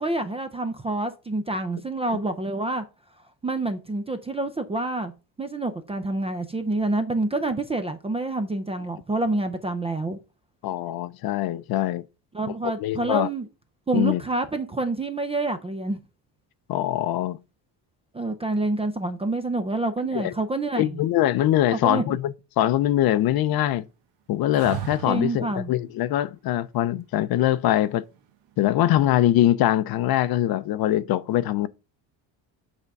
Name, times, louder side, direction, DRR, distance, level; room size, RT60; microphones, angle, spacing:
voice 1, 0.0-2.8 3.4-5.1 5.4-10.2 12.3-13.5 13.9-16.0 18.1-21.0 21.7-22.2 25.1-25.7, right 2 dB, 15° right, 0.3 m, -27 dB
voice 2, 10.6-12.0 12.6-13.3 13.9-14.2 16.7-17.4 20.1-20.3 20.8-23.8 24.3-28.0 28.6-31.7, left 13 dB, 55° left, 0.5 m, -23 dB
sound 1, 24.5-25.5 28.1-28.7, right 10 dB, 75° right, 1.1 m, -35 dB
8.1 x 3.6 x 5.2 m
cardioid pair, 170°, 44 cm